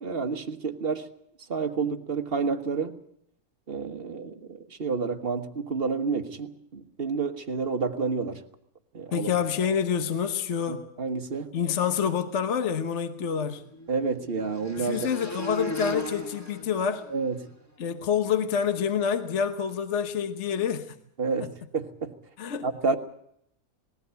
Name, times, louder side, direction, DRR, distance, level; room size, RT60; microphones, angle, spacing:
voice 1, 0.0-1.1 1.5-2.9 3.7-8.4 8.9-9.3 10.7-11.5 13.9-15.1 17.1-17.4 21.2-22.1 22.6-23.0, right 4 dB, 40° right, 1.5 m, -29 dB
voice 2, 9.1-10.8 11.5-13.6 14.8-17.1 17.8-20.9 22.4-22.7, left 7 dB, 50° left, 1.4 m, -27 dB
sound 1, 12.9-17.5, right 1 dB, 10° left, 1.8 m, -38 dB
20.0 x 16.0 x 8.2 m
omnidirectional pair, 1.6 m